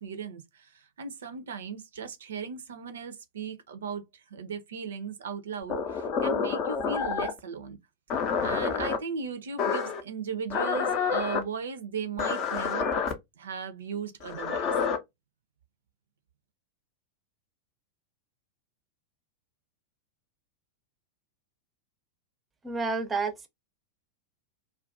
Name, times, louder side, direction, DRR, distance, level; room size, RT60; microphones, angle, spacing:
voice 1, 0.0-7.8 8.4-13.0 13.4-14.7, right 5 dB, 65° right, 0.4 m, -37 dB
sound 1, 5.7-7.4 8.1-9.0 9.6-10.0 10.5-11.4 12.2-13.1 14.2-15.0, left 6 dB, 40° left, 0.5 m, -28 dB
voice 2, 22.6-23.5, right 4 dB, 15° right, 0.6 m, -30 dB
2.3 x 2.2 x 2.5 m
figure-of-eight pair, 90°, 0 cm